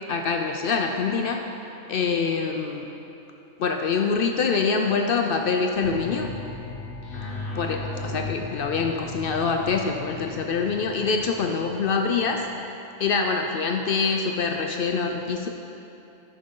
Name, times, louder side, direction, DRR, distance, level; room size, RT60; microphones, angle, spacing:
voice 1, 0.0-1.5 1.9-2.9 3.6-6.3 7.6-12.5 13.0-15.5, left 5 dB, 70° left, 3 dB, 0.5 m, -25 dB
sound 1, 5.8-12.5, left 3 dB, 50° left, 1.0 m, -37 dB
10.5 x 6.3 x 3.7 m, 2.9 s
omnidirectional pair, 1.4 m